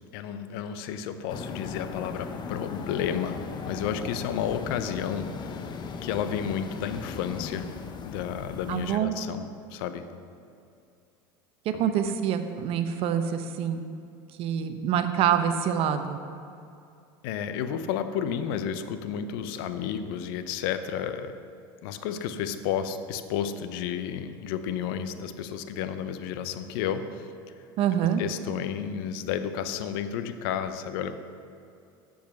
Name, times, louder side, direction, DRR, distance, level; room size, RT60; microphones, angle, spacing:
voice 1, 0.1-5.7 6.0-7.7 8.0-10.1 11.7-11.9 17.2-21.4 21.8-27.3 28.2-31.1, left 8 dB, 70° left, 10 dB, 0.7 m, -32 dB
sound 1, 1.3-9.0, left 5 dB, 35° left, 0.7 m, -37 dB
voice 2, 8.7-9.1 11.8-13.9 14.4-16.2 27.8-28.2, right 9 dB, 55° right, 9 dB, 0.7 m, -26 dB
7.3 x 7.3 x 5.9 m, 2.5 s
supercardioid pair, 95°, 12 cm